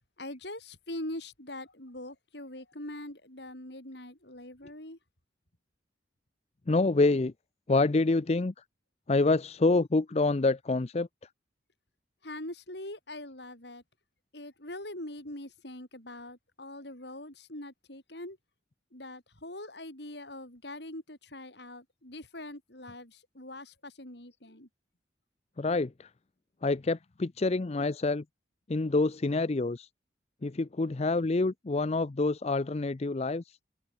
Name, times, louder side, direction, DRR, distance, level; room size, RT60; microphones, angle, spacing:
voice 1, 0.2-5.0 12.2-13.8 14.3-18.4 18.9-24.7, left 1 dB, 65° left, 7.8 m, -43 dB
voice 2, 6.7-7.3 7.7-8.5 9.1-11.1 25.6-26.1 26.6-28.2 28.7-29.9 30.4-33.6, left 3 dB, 35° left, 0.5 m, -27 dB
head